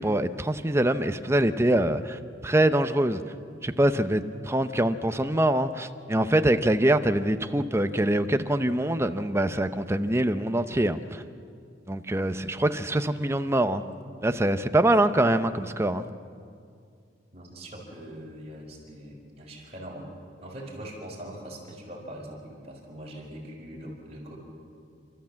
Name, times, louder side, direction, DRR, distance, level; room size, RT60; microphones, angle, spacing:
voice 1, 0.0-3.2 3.6-11.2 11.9-13.8 14.2-16.1, right 1 dB, 15° right, 9 dB, 0.6 m, -24 dB
voice 2, 17.3-20.1 20.4-24.4, right 1 dB, 35° right, -2 dB, 4.9 m, -42 dB
29.0 x 13.0 x 7.5 m, 2.3 s
head